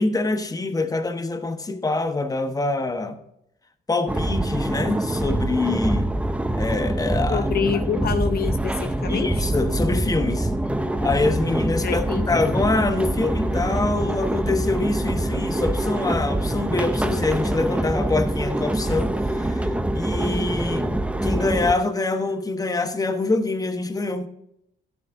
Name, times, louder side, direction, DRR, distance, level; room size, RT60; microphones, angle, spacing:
voice 1, 0.0-3.2 3.9-6.1 6.6-7.5 9.1-10.5 11.0-19.7 19.9-24.3, left 3 dB, 20° left, 1.0 m, -25 dB
sound 1, 4.1-21.7, right 1 dB, 5° right, 0.6 m, -24 dB
voice 2, 7.3-9.5 11.8-12.5, left 7 dB, 50° left, 0.7 m, -27 dB
12.0 x 9.7 x 2.6 m
cardioid pair, 90°, 20 cm